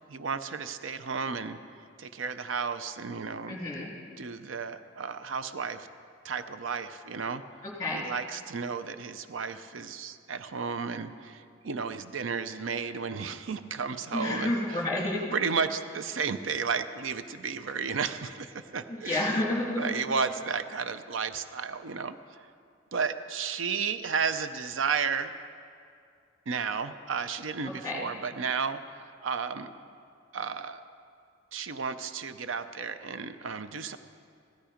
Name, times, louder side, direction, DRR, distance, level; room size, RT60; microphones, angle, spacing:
voice 1, 0.1-1.6 2.0-3.6 4.2-5.9 6.2-7.4 7.9-14.8 15.3-19.3 19.8-22.2 22.9-25.3 26.5-29.7 30.3-30.8 31.5-34.0, right 5 dB, 85° right, 11 dB, 0.6 m, -33 dB
voice 2, 3.5-3.9 7.6-8.1 14.1-15.4 18.9-19.9 27.6-28.0, left 1 dB, 20° left, -3 dB, 2.9 m, -30 dB
16.5 x 13.0 x 5.1 m, 2.3 s
head